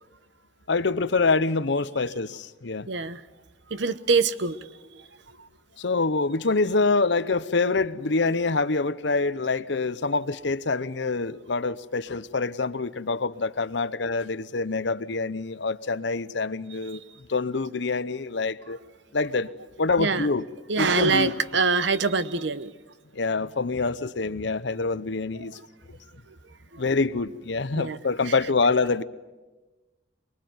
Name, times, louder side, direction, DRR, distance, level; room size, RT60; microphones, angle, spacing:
voice 1, 0.7-2.9 5.8-17.0 17.3-18.8 19.1-19.5 19.8-20.4 20.8-21.3 23.1-25.6 26.8-29.0, left 3 dB, 65° left, 0.8 m, -26 dB
voice 2, 2.9-3.2 3.7-4.6 20.0-20.3 20.7-22.7 27.7-28.0 28.3-28.4, right 4 dB, 65° right, 1.0 m, -24 dB
24.0 x 21.5 x 9.4 m
head